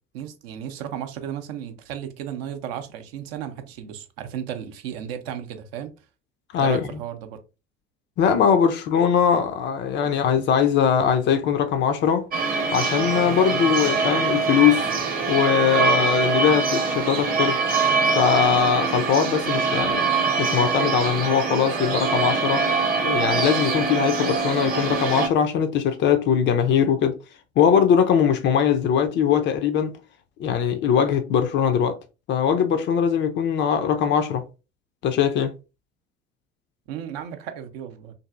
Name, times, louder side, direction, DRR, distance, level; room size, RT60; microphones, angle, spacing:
voice 1, 0.1-5.9 6.6-7.4 36.9-38.1, right 9 dB, 55° right, 0.6 m, -34 dB
voice 2, 8.2-12.2 12.7-14.9 15.3-17.6 18.1-20.1 20.4-22.7 23.0-27.2 27.6-29.9 30.4-32.0 32.3-34.4 35.0-35.5, left 8 dB, 35° left, 0.4 m, -21 dB
sound 1, 12.3-25.3, right 4 dB, 25° right, 0.8 m, -23 dB
2.6 x 2.5 x 2.3 m
figure-of-eight pair, 65°, 35 cm